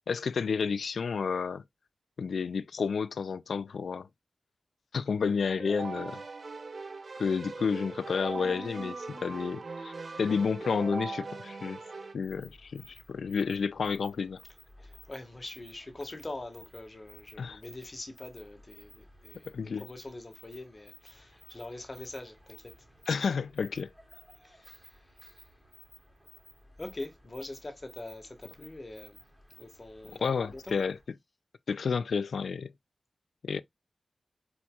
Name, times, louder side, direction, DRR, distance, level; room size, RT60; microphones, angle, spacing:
voice 1, 0.0-1.6 2.2-4.1 4.9-6.2 7.2-9.9 10.2-11.8 12.1-14.4 17.4-17.6 19.5-19.8 23.1-23.9 30.2-31.0 31.7-32.7 33.4-33.6, left 5 dB, 90° left, 0.3 m, -30 dB
Keyboard (musical), 5.6-12.1, right 4 dB, 60° right, 0.7 m, -40 dB
sound 1, 12.2-31.1, equal, 5° right, 2.3 m, -56 dB
voice 2, 14.8-22.7 24.4-25.4 26.8-29.2 29.5-30.7, left 2 dB, 40° left, 1.5 m, -44 dB
4.3 x 4.3 x 2.3 m
cardioid pair, 55°, 0 cm